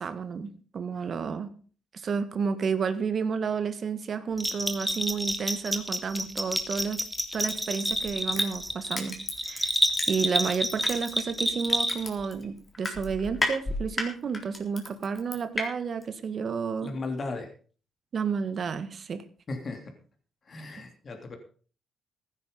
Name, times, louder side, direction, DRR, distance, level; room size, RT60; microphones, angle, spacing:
voice 1, 0.0-1.5 1.9-7.0 7.3-9.2 9.5-9.7 10.1-16.9 18.1-19.2, right 5 dB, 50° right, 12 dB, 1.7 m, -31 dB
Bell, 4.4-12.3, equal, ahead, 2.1 m, -29 dB
Crushing, 7.4-10.4 10.8-15.7 16.0-16.1, left 2 dB, 25° left, 3.8 m, -33 dB
voice 2, 16.8-17.5 19.5-19.9 20.5-21.4, left 3 dB, 40° left, 5 dB, 3.2 m, -36 dB
15.5 x 9.7 x 5.3 m, 0.41 s
cardioid pair, 90°, 0 cm